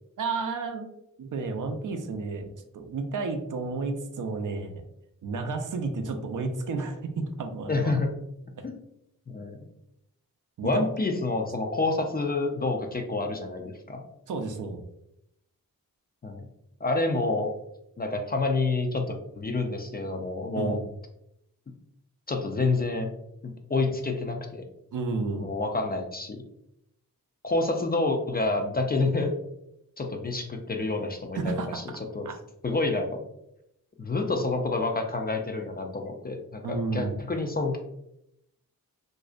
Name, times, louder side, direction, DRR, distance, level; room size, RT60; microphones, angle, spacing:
voice 1, 0.2-0.9 1.2-4.8 5.2-7.9 8.6-8.7 10.6-10.8 14.3-14.8 20.6-20.9 24.9-25.5 31.3-31.8 32.2-32.4 36.6-37.2, right 3 dB, 55° right, 5 dB, 0.5 m, -31 dB
voice 2, 7.7-8.1 8.6-8.7 9.3-9.7 10.6-14.0 16.2-16.5 16.8-17.5 18.0-20.8 22.3-23.1 23.4-24.6 25.4-26.4 27.4-29.3 30.0-31.8 32.1-32.3 32.6-33.3 34.0-37.8, left 3 dB, 25° left, 3 dB, 0.4 m, -28 dB
2.5 x 2.0 x 2.4 m, 0.80 s
cardioid pair, 45°, 37 cm